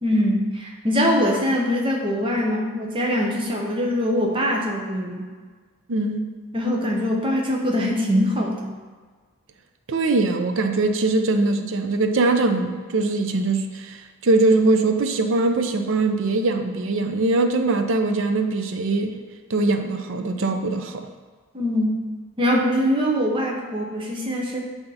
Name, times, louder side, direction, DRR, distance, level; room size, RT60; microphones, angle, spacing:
voice 1, 0.0-5.3 6.5-8.7 21.5-22.0 22.4-24.6, equal, 25° right, -1 dB, 0.8 m, -23 dB
voice 2, 5.9-6.3 9.9-14.0 14.2-19.1 19.5-21.0, right 3 dB, 60° right, 6 dB, 0.5 m, -21 dB
7.8 x 2.9 x 5.4 m, 1.5 s
head